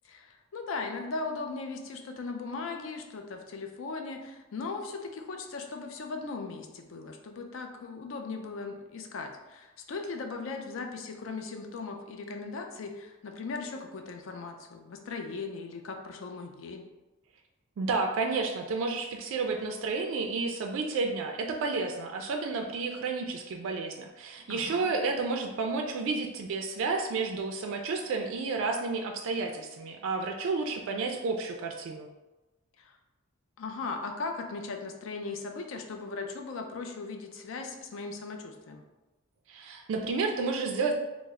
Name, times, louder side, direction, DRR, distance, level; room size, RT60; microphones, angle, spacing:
voice 1, 0.0-16.8 24.5-24.9 32.8-32.9 33.6-38.8, left 4 dB, 65° left, 4 dB, 0.4 m, -38 dB
voice 2, 17.8-32.1 39.5-40.9, right 4 dB, 65° right, 2 dB, 0.3 m, -31 dB
3.1 x 2.0 x 3.5 m, 1.1 s
head